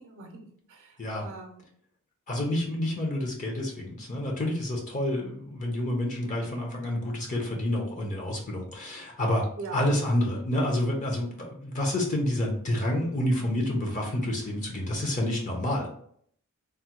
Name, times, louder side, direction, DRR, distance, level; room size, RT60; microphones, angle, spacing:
voice 1, 0.0-1.6 2.4-2.6 9.6-9.8, right 4 dB, 60° right, 3 dB, 0.5 m, -43 dB
voice 2, 2.3-15.9, left 1 dB, 35° left, 0 dB, 0.6 m, -28 dB
3.4 x 2.1 x 2.9 m, 0.64 s
head